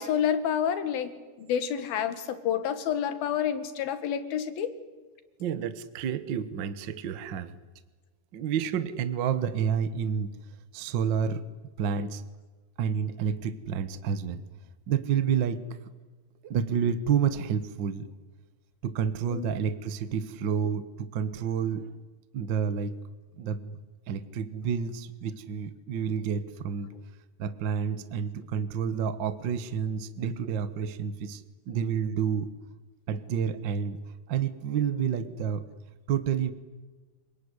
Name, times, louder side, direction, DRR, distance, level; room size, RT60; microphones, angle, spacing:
voice 1, 0.0-4.7 19.3-19.6, left 9 dB, 90° left, 11 dB, 3.6 m, -29 dB
voice 2, 5.4-7.6 8.3-10.3 10.7-11.5 11.8-12.2 12.8-14.4 14.9-15.6 16.4-18.1 18.8-21.9 22.3-22.9 23.4-23.8 24.1-26.9 27.4-32.5 33.1-34.0 34.3-35.6 36.1-36.5, right 7 dB, 75° right, 13 dB, 1.0 m, -29 dB
27.5 x 18.5 x 9.8 m, 1.4 s
omnidirectional pair, 4.1 m